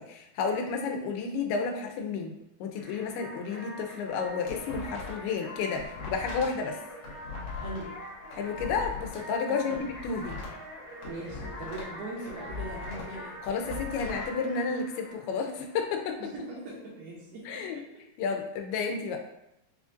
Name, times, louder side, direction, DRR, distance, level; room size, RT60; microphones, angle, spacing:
voice 1, 0.0-2.3 2.6-6.8 8.3-9.8 10.0-10.4 13.5-16.2 17.5-17.8 18.2-19.2, left 5 dB, 90° left, 3 dB, 2.5 m, -31 dB
sound 1, 2.7-16.2, left 1 dB, 55° left, 1.0 m, -44 dB
sound 2, 4.1-5.3 5.6-9.2 9.6-12.0 12.2-14.3, left 4 dB, 75° left, 1.8 m, -40 dB
voice 2, 7.6-8.0 9.5-9.8 11.1-13.4 16.2-18.0, right 2 dB, 80° right, -7 dB, 2.6 m, -41 dB
6.4 x 2.5 x 2.5 m, 0.82 s
omnidirectional pair, 4.4 m